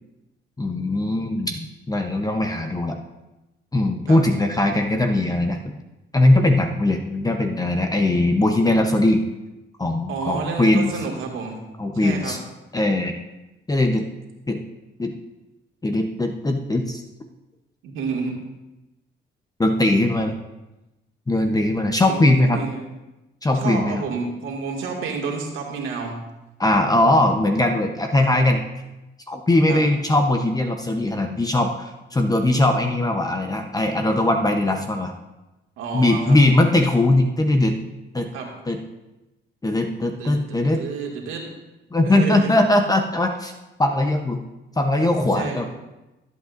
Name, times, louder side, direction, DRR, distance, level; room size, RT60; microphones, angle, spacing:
voice 1, 0.6-3.0 3.7-5.8 6.1-9.2 9.8-11.0 11.8-12.4 12.7-13.1 13.7-14.1 14.5-14.6 15.0-15.1 15.8-17.0 19.6-20.3 21.3-22.6 23.4-24.0 26.6-28.6 29.3-35.1 35.9-37.8 38.1-38.3 38.7-38.8 39.6-40.8 41.9-43.5 43.8-44.4 44.8-45.7, left 1 dB, 20° left, 4 dB, 0.8 m, -20 dB
voice 2, 10.1-11.6 12.0-12.4 17.8-18.4 22.0-22.9 23.5-26.2 29.7-29.8 35.8-36.6 38.3-38.5 40.2-40.3 40.8-41.5 42.1-42.5 45.3-45.7, right 5 dB, 90° right, 0 dB, 2.1 m, -29 dB
19.5 x 8.3 x 2.6 m, 1.0 s
cardioid pair, 90°, 20 cm